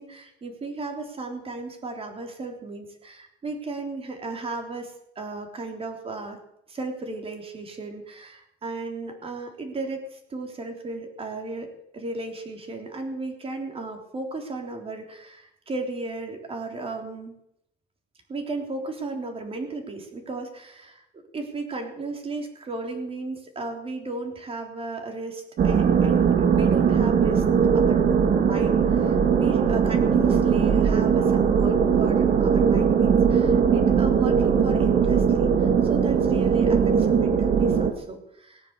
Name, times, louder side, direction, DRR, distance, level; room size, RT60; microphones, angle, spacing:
voice 1, 0.0-6.4 6.7-17.4 18.3-27.4 27.7-38.6, right 3 dB, 30° right, 4 dB, 3.6 m, -35 dB
sound 1, 25.6-37.9, right 7 dB, 50° right, 2.2 m, -20 dB
18.5 x 9.4 x 8.2 m, 0.77 s
cardioid pair, 140°, 19 cm